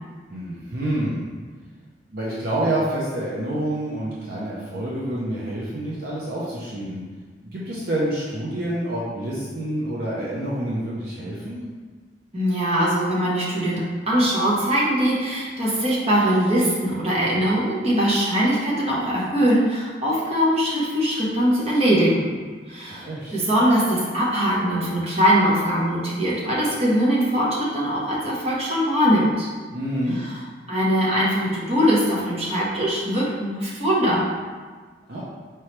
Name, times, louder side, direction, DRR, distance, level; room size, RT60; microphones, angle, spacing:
voice 1, 0.3-1.3 2.1-7.0 7.5-11.6 22.9-23.4 29.7-30.2 35.1-35.2, right 1 dB, 55° right, -6 dB, 0.6 m, -27 dB
voice 2, 12.3-13.8 14.1-22.3 22.7-29.5 30.1-30.4 30.7-34.2, equal, 35° right, -6 dB, 1.0 m, -21 dB
4.6 x 3.0 x 3.2 m, 1.5 s
head